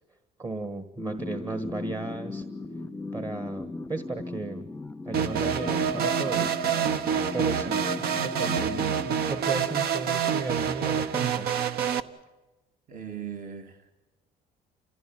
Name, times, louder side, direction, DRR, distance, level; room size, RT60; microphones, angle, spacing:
voice 1, 0.4-2.4 3.1-4.7 5.0-6.6 7.3-11.5, right 3 dB, 25° right, 10 dB, 1.4 m, -35 dB
sound 1, 1.0-10.0, left 3 dB, 15° left, 0.7 m, -37 dB
sound 2, 5.1-12.0, right 8 dB, 70° right, 1.1 m, -27 dB
voice 2, 12.9-13.9, right 8 dB, 50° right, 5 dB, 2.2 m, -39 dB
30.0 x 16.0 x 9.1 m, 1.1 s
cardioid pair, 110°, 17 cm